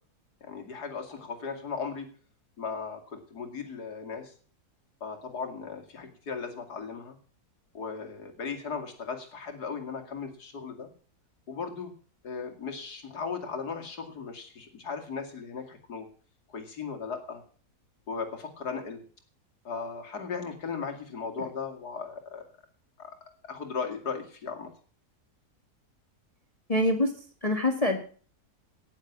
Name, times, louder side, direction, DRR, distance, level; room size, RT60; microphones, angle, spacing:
voice 1, 0.4-2.1 2.6-4.3 5.0-7.2 7.7-10.9 11.5-11.9 12.2-16.1 16.5-17.4 18.1-19.0 19.6-22.4 23.0-23.1 23.5-24.7, left 5 dB, 80° left, 4 dB, 2.9 m, -37 dB
voice 2, 26.7-27.1 27.4-28.0, left 1 dB, 25° left, 5 dB, 1.7 m, -24 dB
18.0 x 7.3 x 7.3 m, 0.42 s
omnidirectional pair, 1.7 m